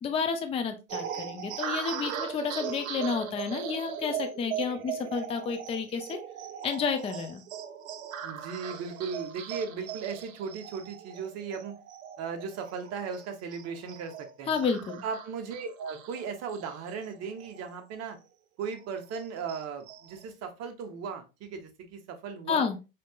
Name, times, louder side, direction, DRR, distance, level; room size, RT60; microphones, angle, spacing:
voice 1, 0.0-6.2 6.6-7.4 14.5-15.0 22.5-22.8, left 5 dB, 15° left, 6 dB, 0.5 m, -30 dB
sound 1, 0.9-17.8 18.1-18.2 18.6-20.2, right 8 dB, 80° right, 0.6 m, -39 dB
voice 2, 8.2-11.8 12.2-14.5 15.0-18.2 18.6-22.7, right 5 dB, 40° right, 5 dB, 1.0 m, -37 dB
4.2 x 2.9 x 2.2 m, 0.28 s
hypercardioid pair, 85°, 40 cm